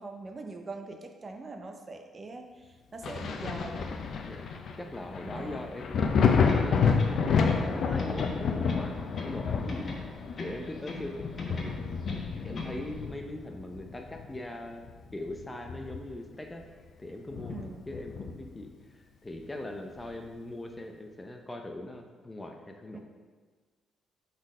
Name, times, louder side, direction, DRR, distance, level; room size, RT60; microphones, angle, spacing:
voice 1, 0.0-4.0 5.3-5.6 17.5-17.8 22.9-23.0, right 3 dB, 35° right, 4 dB, 0.6 m, -42 dB
Thunder, 3.0-14.4 14.8-16.3 16.6-16.7 17.3-18.6 20.0-20.1, left 5 dB, 60° left, 0.6 m, -30 dB
voice 2, 4.8-9.9 10.4-11.8 12.4-16.6 17.0-23.0, left 1 dB, 15° left, 3 dB, 0.7 m, -41 dB
sound 1, 6.5-7.7 8.0-9.4 9.7-11.1 11.4-12.8, left 2 dB, 45° left, 1.2 m, -40 dB
6.2 x 4.1 x 4.9 m, 1.4 s
cardioid pair, 90°, 0 cm